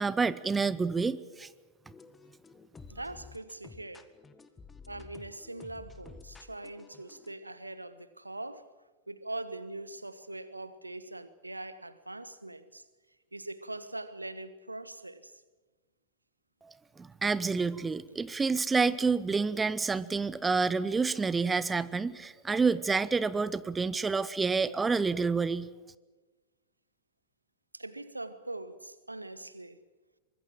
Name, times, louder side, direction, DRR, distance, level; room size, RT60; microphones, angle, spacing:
voice 1, 0.0-1.5 16.6-25.7, right 4 dB, 15° right, 0.8 m, -28 dB
sound 1, 1.8-7.3, left 4 dB, 15° left, 1.7 m, -52 dB
voice 2, 2.9-4.1 4.9-8.7 9.1-12.8 13.3-15.3 27.7-29.8, right 2 dB, 85° right, 1.3 m, -42 dB
24.5 x 21.0 x 7.6 m
figure-of-eight pair, 90°, 0 cm